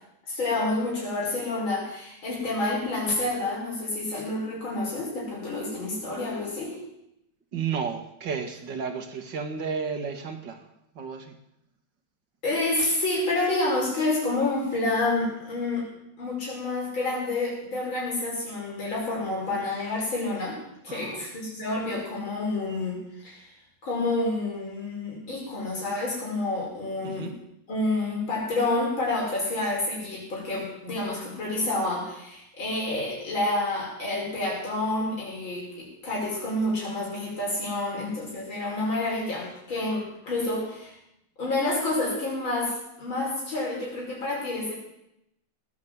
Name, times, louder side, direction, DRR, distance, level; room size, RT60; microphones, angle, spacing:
voice 1, 0.3-6.8 12.4-15.9 16.2-20.6 20.8-23.5 23.8-27.3 27.7-40.9 41.4-44.7, left 2 dB, 85° left, -4 dB, 6.2 m, -29 dB
voice 2, 7.5-10.6 11.0-11.3 20.9-21.2 27.0-27.4, right 6 dB, 65° right, 6 dB, 2.5 m, -32 dB
19.0 x 9.7 x 7.5 m, 0.81 s
omnidirectional pair, 2.1 m